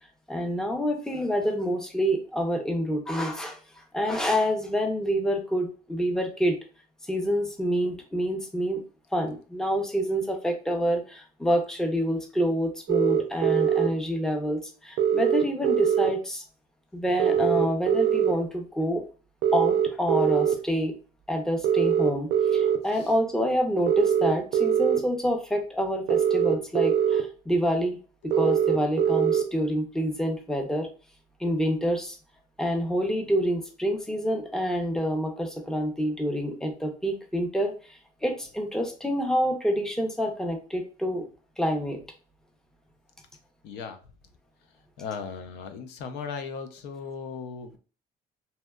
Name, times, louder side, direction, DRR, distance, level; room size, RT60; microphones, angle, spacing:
voice 1, 0.3-6.6 7.1-8.8 9.1-16.4 16.9-19.0 19.5-20.9 21.3-28.0 28.2-30.9 31.4-32.2 32.6-37.7 38.2-41.2 41.6-42.0, equal, 5° left, 3 dB, 0.5 m, -27 dB
sound 1, 12.9-13.9 15.0-16.1 17.2-18.3 19.4-20.5 21.6-22.8 23.9-25.0 26.1-27.2 28.3-29.4, right 9 dB, 70° right, 0.4 m, -22 dB
voice 2, 43.6-44.0 45.0-47.8, left 5 dB, 85° left, 7 dB, 0.4 m, -37 dB
2.7 x 2.1 x 2.2 m, 0.36 s
cardioid pair, 110°, 17 cm